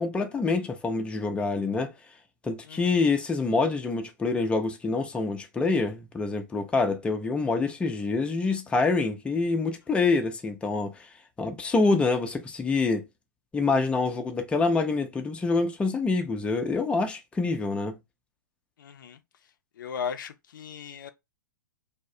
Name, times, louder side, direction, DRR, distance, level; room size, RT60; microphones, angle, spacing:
voice 1, 0.0-1.9 2.4-11.1 11.4-13.0 13.5-18.0, left 3 dB, 10° left, 0.4 m, -26 dB
voice 2, 2.6-3.1 18.8-19.5 19.8-21.1, left 7 dB, 70° left, 0.4 m, -37 dB
2.3 x 2.0 x 2.6 m
hypercardioid pair, 115°, 11 cm